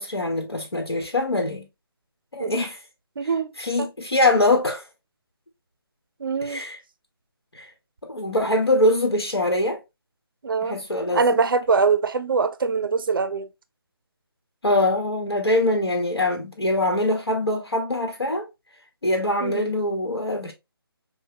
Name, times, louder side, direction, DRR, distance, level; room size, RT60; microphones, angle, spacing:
voice 1, 0.0-1.6 2.3-2.8 3.6-4.8 6.5-6.8 7.5-7.7 8.1-9.8 10.7-11.2 14.6-18.5 19.0-20.5, left 1 dB, 85° left, 1.1 m, -23 dB
voice 2, 3.2-3.5 3.8-3.9 6.2-6.6 10.4-10.8 11.1-13.5 19.4-19.7, right 5 dB, 60° right, 0.5 m, -23 dB
6.3 x 2.2 x 2.7 m
figure-of-eight pair, 150°, 13 cm